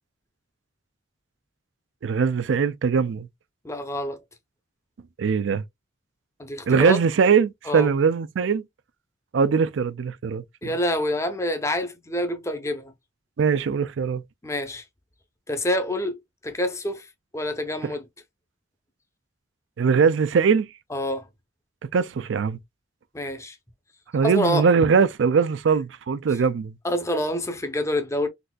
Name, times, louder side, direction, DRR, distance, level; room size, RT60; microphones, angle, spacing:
voice 1, 2.0-3.3 5.2-5.6 6.7-8.6 9.3-10.7 13.4-14.2 19.8-20.7 21.9-22.6 24.1-26.7, right 5 dB, 70° right, 0.4 m, -21 dB
voice 2, 3.6-4.2 6.4-7.0 7.7-7.9 10.6-12.9 14.4-14.8 15.5-16.2 16.4-17.1 17.3-18.0 20.9-21.3 23.1-23.6 24.2-24.7 26.8-28.3, left 1 dB, 15° left, 0.6 m, -27 dB
4.0 x 2.5 x 2.3 m
head